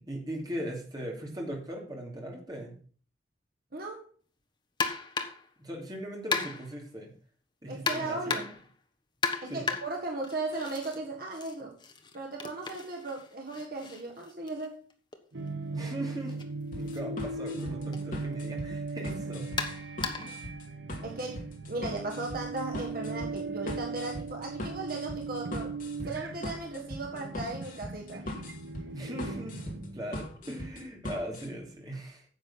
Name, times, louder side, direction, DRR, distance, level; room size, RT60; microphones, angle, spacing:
voice 1, 0.0-2.8 5.6-7.1 7.6-8.2 9.5-9.7 15.7-16.5 16.7-19.5 20.2-20.4 28.9-32.2, right 1 dB, 20° right, 0 dB, 2.9 m, -39 dB
voice 2, 3.7-4.1 7.7-8.6 9.4-11.7 12.1-14.8 21.0-25.8 26.1-28.3, right 2 dB, 50° right, 1 dB, 1.7 m, -37 dB
sound 1, 4.8-5.5 6.3-6.8 7.9-8.7 9.2-11.0 11.3-15.2 16.3-16.4 16.9-17.0 17.9-18.1 19.6-20.4, left 4 dB, 25° left, 1.1 m, -35 dB
sound 2, 15.3-30.5, right 3 dB, 70° right, 1.1 m, -39 dB
sound 3, 16.7-31.5, left 1 dB, 45° left, 2.4 m, -40 dB
10.0 x 7.5 x 5.7 m, 0.43 s
head